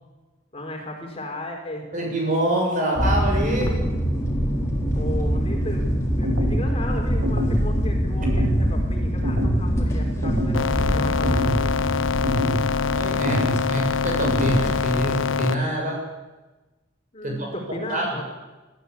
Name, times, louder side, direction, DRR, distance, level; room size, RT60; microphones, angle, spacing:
voice 1, 0.5-1.9 5.0-11.7 17.1-18.2, left 1 dB, 30° left, 1 dB, 4.2 m, -35 dB
voice 2, 1.9-3.7 8.4-8.5 12.9-16.0 17.2-17.5 17.9-18.2, right 1 dB, 40° right, 0 dB, 7.0 m, -25 dB
sound 1, 3.0-15.2, equal, 15° left, 4.0 m, -25 dB
sound 2, 6.2-6.6 7.2-7.6 8.2-8.6 9.2-9.6 10.2-10.6 11.2-11.6 12.2-12.6 13.2-13.6 14.2-14.6, equal, 80° right, 2.9 m, -25 dB
sound 3, 10.5-15.5, left 5 dB, 75° left, 0.9 m, -24 dB
20.0 x 13.5 x 9.8 m, 1.2 s
head